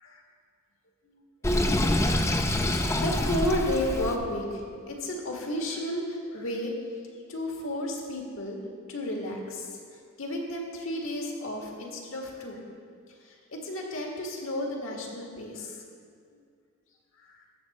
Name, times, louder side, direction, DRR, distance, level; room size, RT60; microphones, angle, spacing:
Sink (filling or washing), 1.4-4.2, left 1 dB, 15° left, 0.5 m, -26 dB
voice 1, 2.9-6.7 7.3-8.6 8.9-12.6 13.2-15.8 16.3-16.4 17.2-17.4, left 1 dB, 75° left, 0 dB, 1.8 m, -33 dB
15.0 x 6.7 x 4.2 m, 2.2 s
head